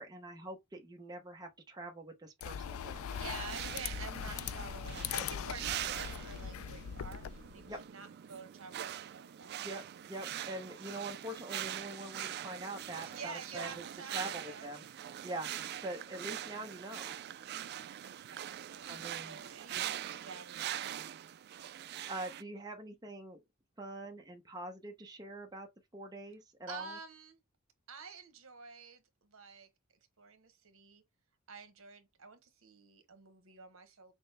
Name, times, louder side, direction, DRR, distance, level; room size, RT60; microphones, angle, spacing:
voice 1, 0.0-3.1 4.3-4.6 7.7-7.8 9.6-13.8 14.1-14.8 15.2-15.5 15.8-17.2 18.9-19.4 21.8-23.4 23.8-25.7 25.9-27.0, right 2 dB, 20° right, 0.8 m, -44 dB
sound 1, 2.4-7.8, left 8 dB, 85° left, 0.3 m, -41 dB
sound 2, 3.1-22.4, right 11 dB, 50° right, 0.3 m, -43 dB
voice 2, 3.1-9.8 13.0-15.0 18.2-21.0 26.7-27.4 27.9-29.7 30.2-31.0 31.5-34.1, right 5 dB, 75° right, 1.1 m, -49 dB
6.1 x 2.1 x 3.3 m
head